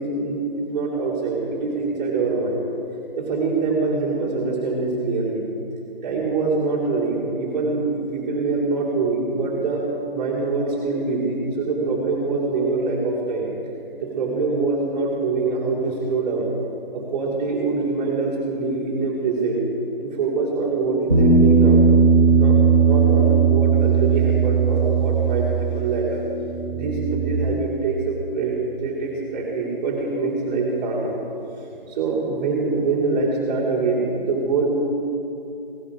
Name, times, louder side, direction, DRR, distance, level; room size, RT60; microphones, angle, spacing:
voice 1, 0.0-2.6 3.2-5.5 6.0-9.8 10.1-13.5 14.0-16.5 16.9-19.6 20.0-21.8 22.3-26.2 26.7-28.5 28.8-31.1 31.6-34.7, right 3 dB, 20° right, -6 dB, 2.9 m, -24 dB
Bass guitar, 21.1-27.3, right 5 dB, 5° left, 0.4 m, -17 dB
17.0 x 11.5 x 5.0 m, 2.7 s
figure-of-eight pair, 150°, 29 cm